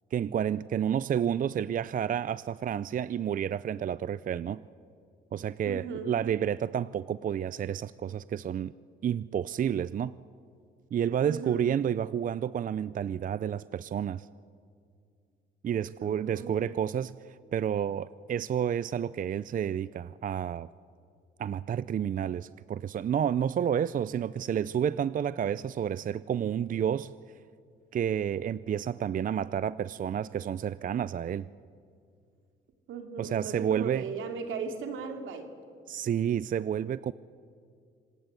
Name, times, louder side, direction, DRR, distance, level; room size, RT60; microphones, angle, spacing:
voice 1, 0.1-4.6 5.3-8.7 9.0-10.1 10.9-14.3 15.6-17.1 17.5-20.7 21.4-27.1 27.9-31.5 33.2-34.1 35.9-37.1, right 9 dB, 45° right, 17 dB, 0.5 m, -30 dB
voice 2, 5.6-6.1 11.2-11.7 16.0-16.7 32.9-35.5, right 5 dB, 85° right, 5 dB, 2.9 m, -37 dB
26.0 x 19.5 x 8.2 m, 2.3 s
cardioid pair, 90°, 20 cm